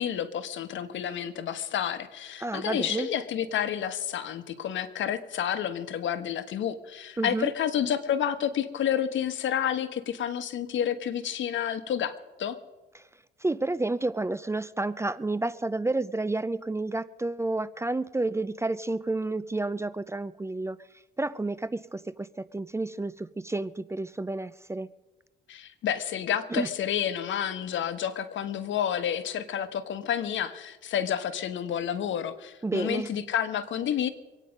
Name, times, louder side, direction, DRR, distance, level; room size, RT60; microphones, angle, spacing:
voice 1, 0.0-12.6 25.5-34.1, left 9 dB, 70° left, 11 dB, 1.3 m, -30 dB
voice 2, 2.4-3.1 7.2-7.5 12.9-13.1 13.4-20.8 21.2-24.9 26.5-26.7 32.6-33.1, right 2 dB, 15° right, 16 dB, 0.5 m, -30 dB
24.5 x 9.3 x 5.3 m, 1.1 s
cardioid pair, 90°, 20 cm